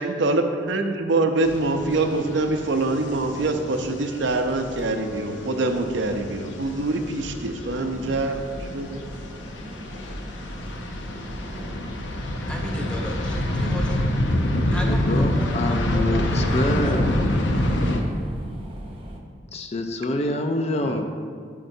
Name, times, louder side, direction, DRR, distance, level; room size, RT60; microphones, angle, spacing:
voice 1, 0.0-9.0 20.8-21.0, right 2 dB, 70° right, 5 dB, 0.6 m, -25 dB
sound 1, 1.4-18.0, left 1 dB, 70° left, 0.7 m, -27 dB
Chink clink, 4.8-9.3, left 14 dB, 55° left, 1.2 m, -45 dB
sound 2, 7.9-19.2, equal, 30° right, 0.7 m, -39 dB
voice 2, 12.5-14.2 14.7-18.2, equal, 5° left, 0 dB, 0.8 m, -35 dB
voice 3, 14.8-17.1 19.5-21.0, left 1 dB, 35° left, 5 dB, 0.4 m, -26 dB
8.5 x 7.6 x 2.7 m, 2.1 s
head